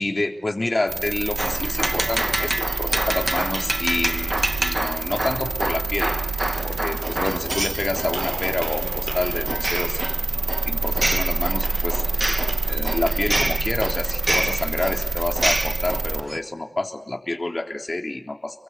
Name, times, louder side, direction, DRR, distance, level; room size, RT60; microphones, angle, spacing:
voice 1, 0.0-6.1 6.6-12.0 12.7-18.6, left 2 dB, 40° left, 3 dB, 3.6 m, -28 dB
sound 1, 0.9-16.2, right 3 dB, 80° right, 1.4 m, -27 dB
sound 2, 1.4-16.4, right 1 dB, 20° right, 1.5 m, -28 dB
Gunshot gunfire, 8.1-14.1, right 2 dB, 55° right, 6.5 m, -38 dB
29.5 x 24.0 x 8.3 m, 0.70 s
wide cardioid pair, 65°, 0 cm